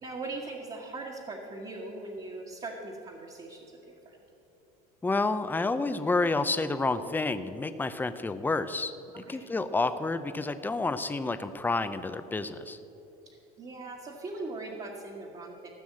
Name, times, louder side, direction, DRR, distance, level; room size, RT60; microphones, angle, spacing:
voice 1, 0.0-4.2 9.1-9.5 13.2-15.7, right 2 dB, 30° right, -4 dB, 1.6 m, -40 dB
voice 2, 5.0-8.9 9.3-12.8, left 3 dB, 10° left, 11 dB, 0.6 m, -29 dB
15.0 x 6.2 x 7.5 m, 3.0 s
supercardioid pair, 105°, 20 cm